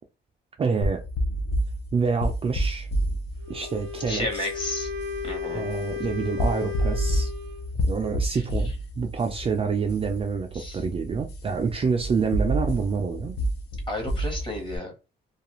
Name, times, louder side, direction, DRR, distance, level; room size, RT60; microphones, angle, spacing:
voice 1, 0.6-1.0 1.9-2.9 3.5-4.5 5.5-7.3 7.8-13.4, right 5 dB, 30° right, 0.4 m, -27 dB
sound 1, 0.8-14.8, equal, 60° left, 0.6 m, -30 dB
Wind instrument woodwind instrument, 3.4-7.7, left 7 dB, 85° right, 0.6 m, -35 dB
voice 2, 4.1-4.9 5.2-5.7 8.3-8.4 10.5-10.8 13.9-14.9, left 1 dB, 25° left, 1.0 m, -32 dB
2.4 x 2.3 x 3.0 m
cardioid pair, 145°, 20 cm